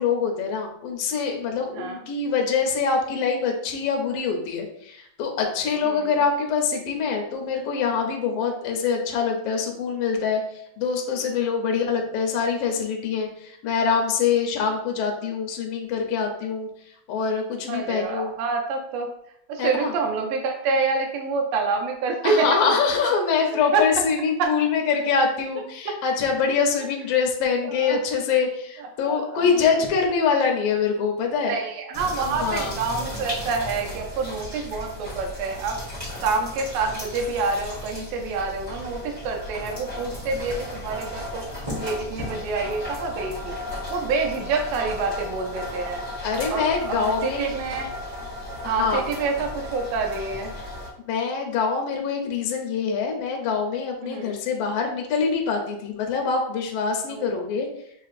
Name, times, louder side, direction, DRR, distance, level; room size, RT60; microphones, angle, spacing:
voice 1, 0.0-16.7 17.1-18.3 19.6-19.9 22.2-31.5 32.2-32.7 46.2-47.6 48.6-49.0 51.1-57.7, left 5 dB, 70° left, 1 dB, 1.6 m, -24 dB
voice 2, 17.7-19.1 19.5-22.6 23.7-23.8 24.4-24.5 27.6-28.0 29.1-29.7 31.4-35.8 36.2-41.5 41.8-43.6 43.9-46.0 46.5-47.9 48.6-50.5 54.0-54.4 57.1-57.4, right 4 dB, 75° right, 3 dB, 1.7 m, -27 dB
sound 1, 31.9-50.9, left 1 dB, 45° right, 0.4 m, -35 dB
6.4 x 2.9 x 2.5 m, 0.71 s
omnidirectional pair, 3.5 m